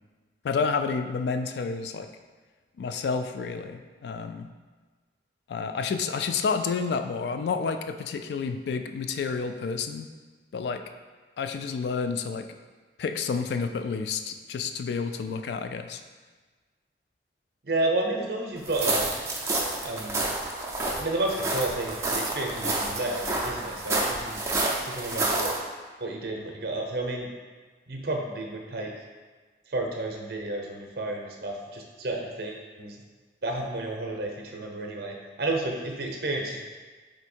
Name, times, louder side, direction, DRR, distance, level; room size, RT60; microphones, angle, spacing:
voice 1, 0.4-2.1 2.8-4.5 5.5-10.1 10.5-10.8 11.4-12.5 13.0-16.0, left 5 dB, 70° left, 8 dB, 0.3 m, -30 dB
voice 2, 17.7-19.2 19.8-20.2 21.0-24.4 24.8-25.5 26.0-27.3 27.9-28.9 29.7-33.0 33.4-36.6, right 2 dB, 55° right, 1 dB, 0.6 m, -31 dB
sound 1, 18.6-25.6, right 2 dB, 15° right, 0.4 m, -29 dB
4.4 x 2.6 x 4.3 m, 1.4 s
head